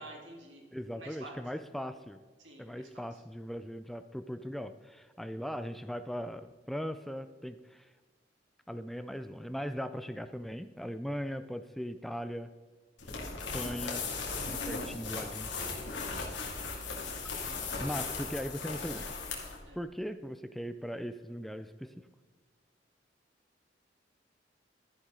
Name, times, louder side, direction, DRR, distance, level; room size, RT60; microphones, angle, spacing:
voice 1, 0.0-0.7 0.9-1.4 2.4-3.2 19.6-19.8, right 2 dB, 80° right, 0 dB, 3.2 m, -50 dB
voice 2, 0.7-2.2 2.6-7.9 8.7-12.5 13.4-14.0 14.4-15.5 17.8-19.1 19.7-22.1, equal, ahead, 10 dB, 0.3 m, -39 dB
sound 1, 13.0-19.6, left 4 dB, 90° left, 2.5 m, -37 dB
13.0 x 10.5 x 3.8 m, 1.4 s
head